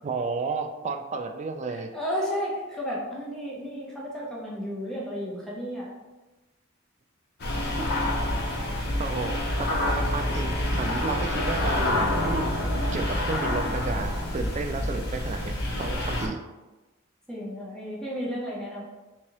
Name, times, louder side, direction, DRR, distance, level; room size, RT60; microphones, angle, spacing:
voice 1, 0.0-1.9 7.8-7.9 9.0-12.5 12.9-15.5 15.8-16.4, right 4 dB, 35° right, 6 dB, 0.3 m, -32 dB
voice 2, 1.7-5.9 17.3-18.8, equal, 5° left, -5 dB, 0.8 m, -33 dB
sound 1, 7.4-16.3, left 1 dB, 55° left, 0.8 m, -27 dB
3.6 x 3.1 x 2.9 m, 1.1 s
head